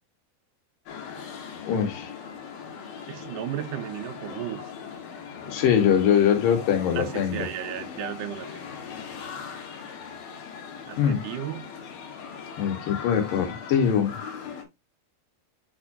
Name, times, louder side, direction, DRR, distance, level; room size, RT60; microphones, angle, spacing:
sound 1, 0.9-14.6, left 6 dB, 90° left, 3.5 m, -39 dB
voice 1, 1.7-2.1 5.5-7.5 11.0-11.2 12.6-14.2, left 8 dB, 75° left, 3.2 m, -22 dB
voice 2, 3.1-4.7 7.0-8.5 10.9-11.6, right 12 dB, 75° right, 2.3 m, -34 dB
7.4 x 6.0 x 2.8 m
omnidirectional pair, 4.1 m